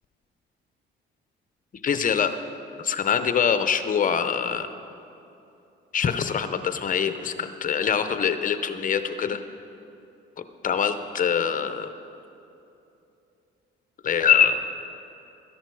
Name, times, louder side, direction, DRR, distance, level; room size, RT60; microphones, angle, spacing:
voice 1, 1.8-2.3 2.8-4.7 5.9-9.4 10.6-11.9 14.0-14.6, left 7 dB, 40° left, 10 dB, 0.7 m, -24 dB
13.0 x 10.5 x 4.7 m, 2.8 s
cardioid pair, 90°, 20 cm